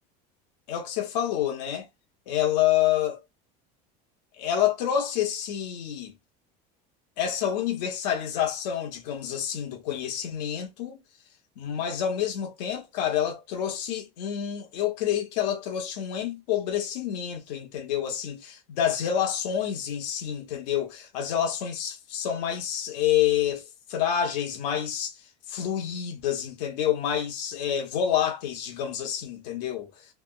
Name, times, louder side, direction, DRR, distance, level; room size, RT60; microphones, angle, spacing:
voice 1, 0.7-1.9 2.3-3.2 4.4-6.1 7.2-11.0 11.6-23.6 23.9-25.1 25.5-29.9, left 10 dB, 85° left, 1.1 m, -28 dB
3.4 x 2.2 x 2.4 m
supercardioid pair, 135°, 21 cm